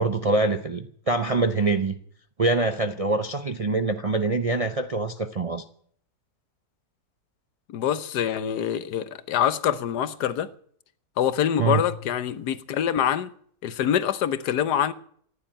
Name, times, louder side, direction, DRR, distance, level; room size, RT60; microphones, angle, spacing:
voice 1, 0.0-2.0 2.4-5.6 11.6-11.9, right 3 dB, 45° right, 0.4 m, -24 dB
voice 2, 7.7-10.5 11.2-13.3 13.6-14.9, left 9 dB, 90° left, 1.4 m, -25 dB
14.5 x 10.5 x 8.9 m
omnidirectional pair, 1.7 m